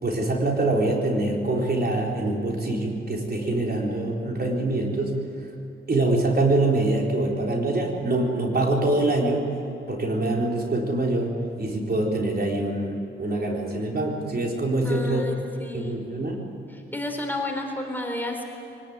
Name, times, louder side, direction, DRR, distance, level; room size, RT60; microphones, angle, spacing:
voice 1, 0.0-5.2 5.9-9.5 9.9-15.2 15.7-16.5, right 2 dB, 50° right, 0 dB, 3.9 m, -24 dB
voice 2, 14.8-16.0 16.7-18.4, left 1 dB, 10° left, 2 dB, 3.8 m, -31 dB
23.5 x 19.0 x 9.5 m, 2.8 s
wide cardioid pair, 95°, 21 cm